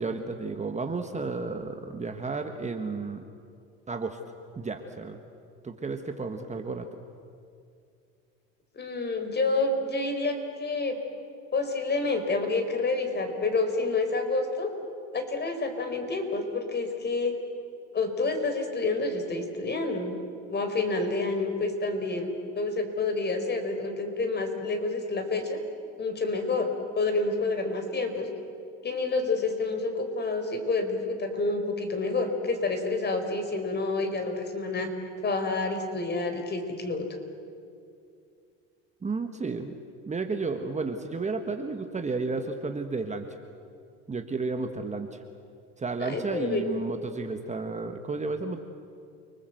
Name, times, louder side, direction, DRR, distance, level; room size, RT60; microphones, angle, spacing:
voice 1, 0.0-3.2 3.9-4.2 4.5-5.2 5.6-6.9 39.0-39.7 40.1-43.3 44.1-45.2 45.8-48.6, right 4 dB, 20° right, 6 dB, 1.5 m, -32 dB
voice 2, 8.7-11.0 11.5-14.7 15.1-17.3 17.9-20.1 20.5-25.6 26.0-26.7 26.9-28.3 28.8-34.9 35.2-37.1 46.0-46.6, left 3 dB, 30° left, 6 dB, 4.3 m, -28 dB
29.5 x 20.5 x 7.9 m, 2.4 s
supercardioid pair, 95°, 34 cm